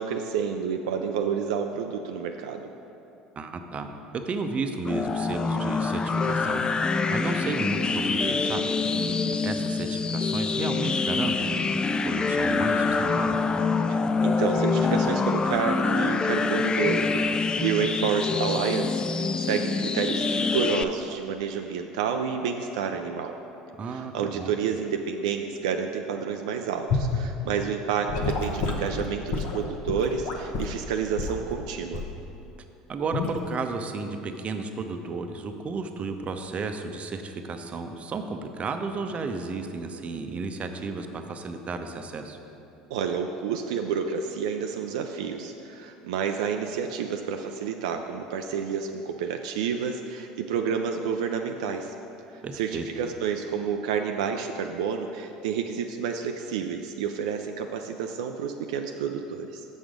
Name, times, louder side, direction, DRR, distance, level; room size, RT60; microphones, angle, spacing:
voice 1, 0.0-2.7 8.9-9.5 13.9-23.4 23.8-32.0 42.9-51.9 52.3-59.7, right 7 dB, 75° right, 4 dB, 0.4 m, -29 dB
voice 2, 3.4-6.6 7.1-8.7 9.4-13.4 23.8-24.5 32.9-42.4 52.4-52.9, right 4 dB, 35° right, 6 dB, 0.7 m, -33 dB
sound 1, 4.9-20.8, left 4 dB, 25° left, 0.3 m, -25 dB
Gurgling / Sink (filling or washing) / Liquid, 26.9-27.2 28.1-30.8 31.2-31.4 31.9-32.2 33.1-33.3, left 4 dB, 60° left, 0.9 m, -29 dB
7.1 x 6.1 x 5.1 m, 2.9 s
hypercardioid pair, 70°, 4 cm